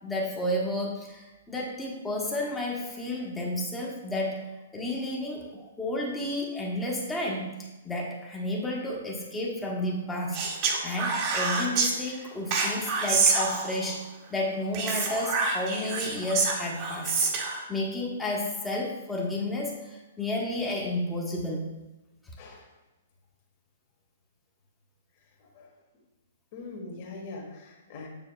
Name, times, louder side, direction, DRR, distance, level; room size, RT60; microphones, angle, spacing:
voice 1, 0.0-10.4 10.8-21.7, left 1 dB, 10° left, -3 dB, 1.1 m, -32 dB
Speech, 10.3-11.9 12.5-13.9 14.7-17.6, right 4 dB, 35° right, 1.0 m, -27 dB
voice 2, 26.5-28.1, left 3 dB, 40° left, -2 dB, 1.4 m, -42 dB
7.0 x 6.6 x 2.3 m, 1.1 s
hypercardioid pair, 155°, 0 cm